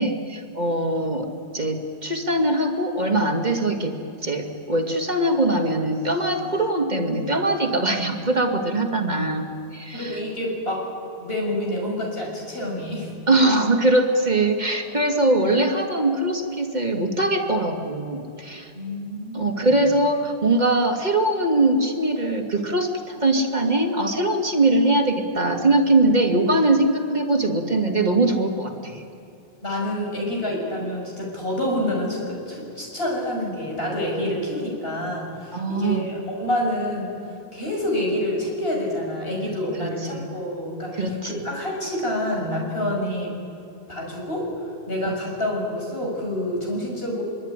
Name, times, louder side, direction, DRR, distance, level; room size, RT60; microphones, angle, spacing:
voice 1, 0.0-4.0 4.2-10.2 13.3-18.7 19.3-29.0 34.2-34.4 35.5-36.1 39.8-40.3 40.9-41.4 45.1-45.2, right 2 dB, 40° right, 2 dB, 2.5 m, -22 dB
voice 2, 9.9-10.8 11.2-13.1 18.7-19.7 29.6-37.1 37.5-43.4 43.9-44.5 44.9-47.2, left 1 dB, 60° left, -1 dB, 7.1 m, -27 dB
24.0 x 24.0 x 9.8 m, 2.6 s
omnidirectional pair, 1.1 m